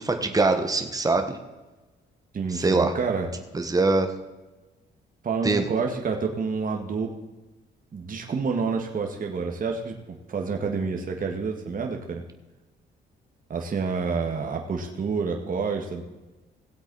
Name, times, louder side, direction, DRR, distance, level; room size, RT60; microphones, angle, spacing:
voice 1, 0.0-1.4 2.5-2.9 3.5-4.1 5.4-5.6, right 3 dB, 20° right, 5 dB, 1.4 m, -23 dB
voice 2, 2.3-3.3 5.2-7.1 7.9-9.9 10.3-12.2 13.5-16.0, right 5 dB, 45° right, 2 dB, 1.7 m, -28 dB
17.5 x 8.0 x 4.1 m, 1.1 s
supercardioid pair, 70°, 19 cm